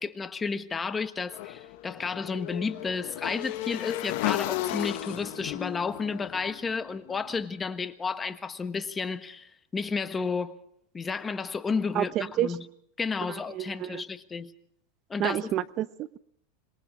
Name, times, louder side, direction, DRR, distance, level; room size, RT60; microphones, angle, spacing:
voice 1, 0.0-10.6 10.9-12.7 13.0-14.5 15.1-15.6, left 5 dB, 20° left, 1.4 m, -32 dB
Motorcycle / Engine, 1.3-7.4, left 15 dB, 65° left, 1.3 m, -34 dB
voice 2, 11.9-12.5 13.5-14.0 15.2-16.2, right 12 dB, 45° right, 0.7 m, -29 dB
26.0 x 21.5 x 4.8 m
hypercardioid pair, 110°, 0 cm